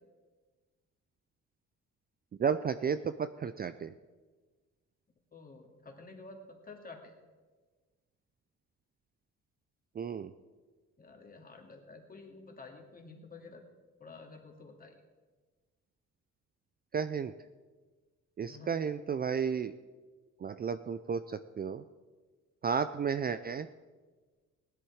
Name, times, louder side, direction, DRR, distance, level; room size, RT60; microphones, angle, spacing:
voice 1, 2.4-3.9 10.0-10.3 16.9-17.3 18.4-19.7 20.4-21.8 22.6-23.7, right 6 dB, 30° right, 12 dB, 0.4 m, -33 dB
voice 2, 5.3-7.1 11.0-13.6 14.0-15.0 18.5-18.8, left 3 dB, 30° left, 2 dB, 2.4 m, -50 dB
16.0 x 11.0 x 4.8 m, 1.4 s
cardioid pair, 90°, 30 cm